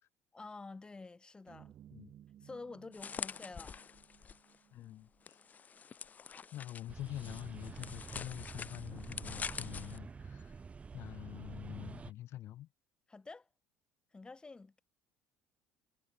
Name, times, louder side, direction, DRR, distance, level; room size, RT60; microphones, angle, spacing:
voice 1, 0.3-1.7 2.4-3.9 6.3-6.5 13.1-13.5 14.1-14.8, left 3 dB, 20° left, 4.4 m, -49 dB
sound 1, 1.5-5.8, right 11 dB, 55° right, 8.0 m, -60 dB
sound 2, 2.9-4.6 5.3-10.0, left 6 dB, 35° left, 4.8 m, -45 dB
voice 2, 4.7-5.4 6.5-10.6 10.9-12.7, left 13 dB, 60° left, 2.1 m, -46 dB
sound 3, 6.9-12.1, right 5 dB, 25° right, 0.9 m, -48 dB
supercardioid pair, 100°, 5 cm